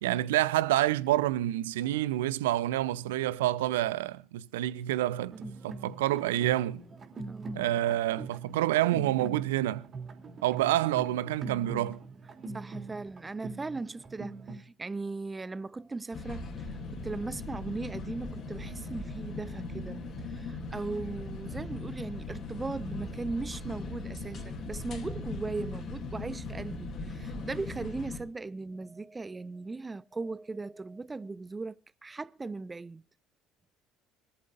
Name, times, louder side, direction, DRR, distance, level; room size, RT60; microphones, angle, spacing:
voice 1, 0.0-5.4 5.6-6.8 7.5-9.9 10.4-12.0, right 14 dB, 75° right, 0.7 m, -28 dB
sound 1, 5.3-14.6, right 3 dB, 40° right, 3.1 m, -42 dB
voice 2, 7.3-7.7 12.5-33.0, right 3 dB, 20° right, 0.6 m, -38 dB
sound 2, 16.1-28.2, left 3 dB, 50° left, 3.0 m, -39 dB
25.0 x 14.0 x 2.6 m
figure-of-eight pair, 55°, 0 cm